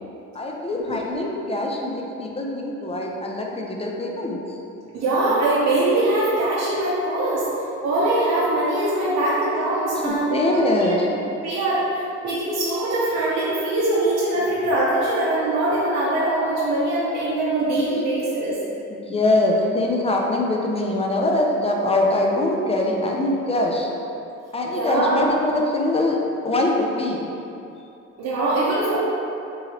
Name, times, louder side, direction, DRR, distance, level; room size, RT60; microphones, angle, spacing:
voice 1, 0.3-4.4 10.0-11.1 19.1-23.9 24.5-26.2 26.4-27.3, left 1 dB, 20° left, 0 dB, 0.5 m, -23 dB
voice 2, 4.9-7.5 7.8-11.2 11.4-18.6 24.7-25.2 28.2-29.0, right 2 dB, 60° right, -8 dB, 0.8 m, -22 dB
3.9 x 3.0 x 2.8 m, 2.8 s
cardioid pair, 90°, 30 cm